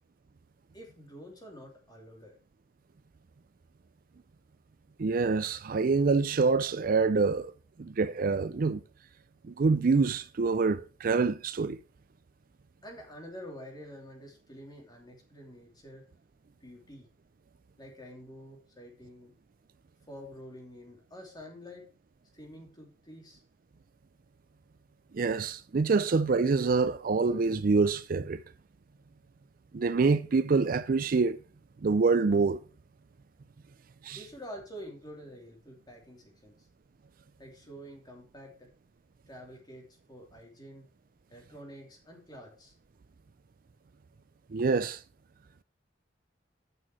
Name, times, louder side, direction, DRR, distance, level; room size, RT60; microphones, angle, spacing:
voice 1, 0.7-2.4 12.8-16.1 16.6-17.1 17.8-19.3 20.1-21.9 22.3-23.4 34.1-36.7 37.4-38.7 39.3-40.9 41.3-42.7, equal, 25° left, 2.9 m, -48 dB
voice 2, 5.0-7.5 7.8-8.8 9.4-11.8 25.1-28.4 29.7-31.4 31.8-32.6 34.0-34.2 44.5-45.0, right 4 dB, 50° right, 0.4 m, -26 dB
9.1 x 6.1 x 4.9 m
head